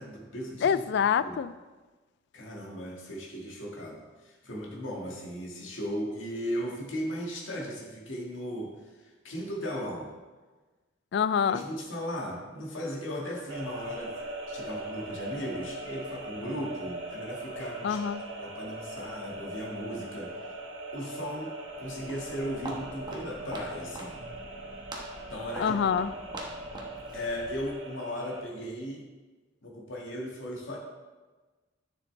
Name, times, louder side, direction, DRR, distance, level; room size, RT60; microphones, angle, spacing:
voice 1, 0.0-0.9 1.2-1.4 2.3-10.1 11.5-14.2 14.5-18.0 18.4-20.5 20.9-21.5 21.8-24.2 25.3-25.8 27.1-29.0 29.6-30.8, equal, 75° left, -2 dB, 1.8 m, -37 dB
voice 2, 0.6-1.5 11.1-11.6 17.8-18.2 25.6-26.1, left 7 dB, 60° left, 15 dB, 0.3 m, -26 dB
sound 1, 13.5-28.4, right 1 dB, 70° right, 1.3 m, -40 dB
Walk footsteps, 21.7-27.8, right 1 dB, 20° right, 1.1 m, -44 dB
10.5 x 6.7 x 3.3 m, 1.3 s
head